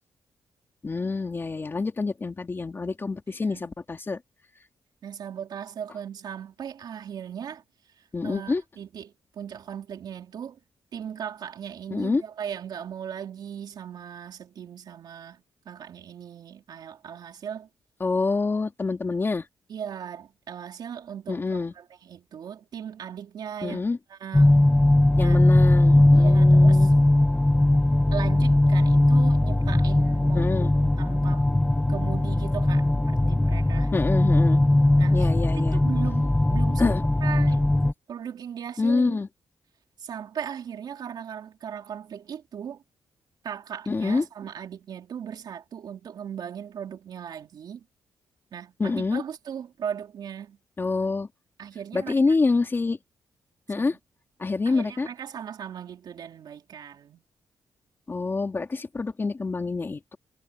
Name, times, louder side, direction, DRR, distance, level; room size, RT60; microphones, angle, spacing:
voice 1, 0.8-4.2 8.1-8.6 11.9-12.2 18.0-19.4 21.3-21.7 23.6-24.0 25.2-26.9 30.3-30.7 33.9-34.6 35.1-35.8 36.8-37.0 38.8-39.3 43.9-44.2 48.8-49.2 50.8-51.3 51.9-53.0 53.7-54.0 54.4-55.1 58.1-60.2, left 3 dB, 30° left, 2.8 m, -26 dB
voice 2, 5.0-7.6 8.2-10.6 10.9-17.7 19.7-23.8 24.1-24.8 25.2-25.4 26.1-26.9 28.1-30.7 31.0-31.5 31.9-33.9 35.0-35.3 35.5-37.6 38.1-39.2 40.0-42.8 43.4-47.8 48.5-50.6 51.6-52.4 53.8-54.0 54.7-57.2, right 8 dB, 70° right, 3.3 m, -38 dB
sound 1, 24.3-37.9, left 1 dB, 10° left, 0.9 m, -19 dB
cardioid pair, 95°, 7 cm